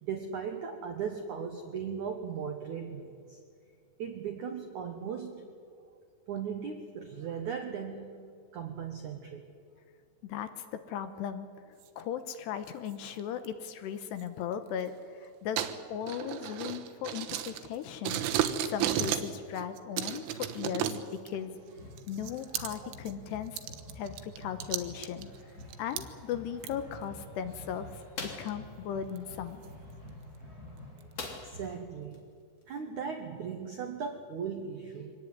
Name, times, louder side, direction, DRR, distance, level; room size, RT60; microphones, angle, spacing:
voice 1, 0.0-3.4 4.0-5.4 6.3-8.2 8.5-9.5 22.8-22.9 31.3-32.3 32.7-35.1, right 6 dB, 75° right, 5 dB, 1.8 m, -38 dB
voice 2, 10.2-11.5 12.0-18.3 18.6-21.6 22.1-23.6 24.0-25.3 25.8-29.6, left 8 dB, 75° left, 10 dB, 2.8 m, -37 dB
sound 1, 11.8-12.0 12.9-13.5 14.2-14.3 15.6-17.8 18.1-19.3 19.6-21.4 22.0-23.1 23.5-26.0 26.6-26.7 27.3-27.4 28.5-28.6 29.2-29.3 29.6-29.7 30.3-30.4 30.8-31.2, right 11 dB, 90° right, 3.7 m, -33 dB
sound 2, 21.3-31.7, left 1 dB, 20° left, 7.8 m, -49 dB
sound 3, 28.2-28.6 31.2-31.7 32.1-32.2 32.6-32.8, left 3 dB, 40° left, 3.6 m, -40 dB
24.5 x 18.5 x 9.5 m, 2.3 s
omnidirectional pair, 5.5 m